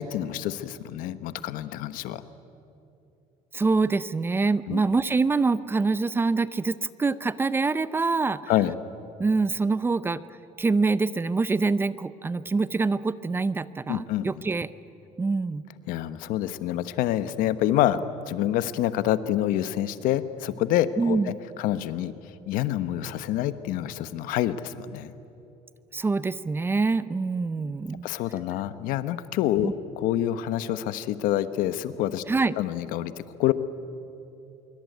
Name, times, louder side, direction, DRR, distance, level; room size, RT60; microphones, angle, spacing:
voice 1, 0.0-2.2 4.7-4.8 8.5-8.8 13.9-14.3 15.9-22.1 22.5-25.1 28.0-32.2 32.6-33.5, left 12 dB, 80° left, 13 dB, 1.2 m, -27 dB
voice 2, 3.5-8.4 9.2-10.2 10.6-14.7 15.2-15.6 21.0-21.3 25.9-28.1 29.6-29.7 32.3-32.5, right 4 dB, 15° right, 16 dB, 0.6 m, -25 dB
25.0 x 24.0 x 9.4 m, 2.9 s
cardioid pair, 145°, 14 cm